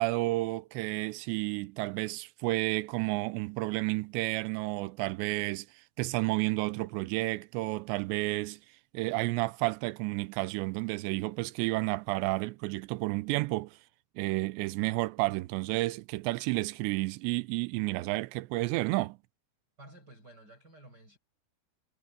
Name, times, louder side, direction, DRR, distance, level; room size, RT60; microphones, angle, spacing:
voice 1, 0.0-5.7 6.0-8.6 8.9-13.8 14.2-19.2, right 21 dB, 80° right, 2.8 m, -31 dB
voice 2, 19.8-21.2, right 1 dB, 20° right, 7.7 m, -53 dB
omnidirectional pair, 5.3 m